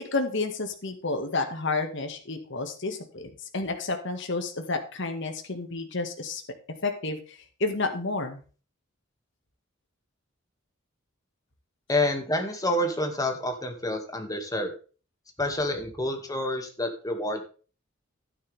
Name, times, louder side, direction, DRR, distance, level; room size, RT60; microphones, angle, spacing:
voice 1, 0.1-6.4 6.8-7.2 7.6-8.4, left 3 dB, 60° left, 5 dB, 2.0 m, -30 dB
voice 2, 11.9-14.7 15.4-17.4, left 1 dB, 20° left, 5 dB, 2.2 m, -28 dB
11.5 x 10.0 x 3.6 m, 0.36 s
head